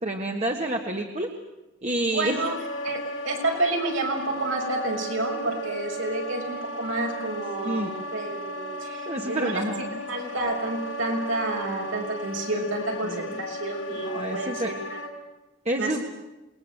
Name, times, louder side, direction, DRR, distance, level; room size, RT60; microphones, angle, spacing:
voice 1, 0.0-1.3 1.8-2.4 7.6-7.9 9.1-10.0 13.0-13.4 14.0-14.7 15.6-16.0, right 1 dB, 35° right, 2 dB, 1.8 m, -28 dB
voice 2, 2.0-2.5 2.8-3.0 3.2-9.6 10.1-15.0 15.8-16.0, right 2 dB, 75° right, 1 dB, 5.9 m, -29 dB
Wind instrument woodwind instrument, 2.3-15.1, right 1 dB, 75° left, 5.3 m, -35 dB
27.5 x 21.0 x 8.0 m, 1.0 s
head